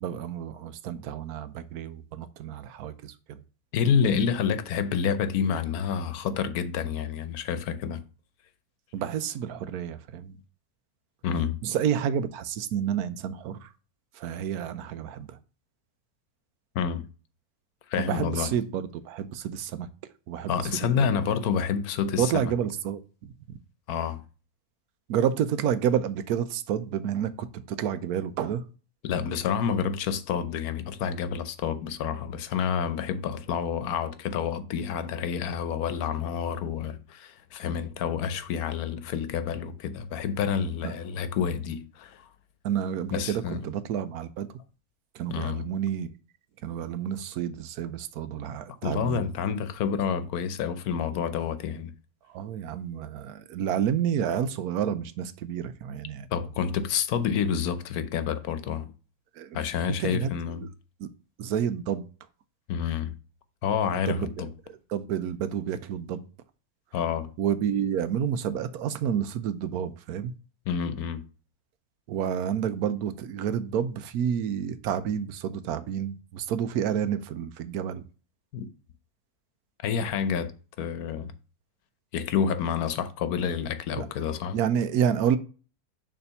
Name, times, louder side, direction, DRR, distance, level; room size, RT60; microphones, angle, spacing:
voice 1, 0.0-3.4 8.9-10.4 11.6-13.7 14.1-15.4 18.0-19.9 20.3-21.1 22.2-23.6 25.1-28.6 40.8-40.9 42.6-44.5 45.1-46.1 46.6-49.3 52.3-56.3 59.4-59.6 60.0-60.7 61.0-61.1 61.4-62.1 63.9-64.3 64.9-66.3 67.4-70.3 72.1-78.0 83.9-84.1 84.5-85.4, right 9 dB, 85° right, 1.1 m, -29 dB
voice 2, 3.7-8.0 11.2-11.6 16.7-17.0 17.9-18.5 20.5-22.5 23.9-24.2 29.0-42.2 43.1-43.6 45.3-45.6 48.8-51.9 56.3-58.9 59.5-60.7 62.7-63.1 63.6-64.5 66.9-67.3 70.7-71.2 78.5-78.7 79.8-80.5 80.8-81.3 82.1-84.6, left 7 dB, 80° left, 1.2 m, -28 dB
6.9 x 3.4 x 5.6 m
omnidirectional pair, 1.6 m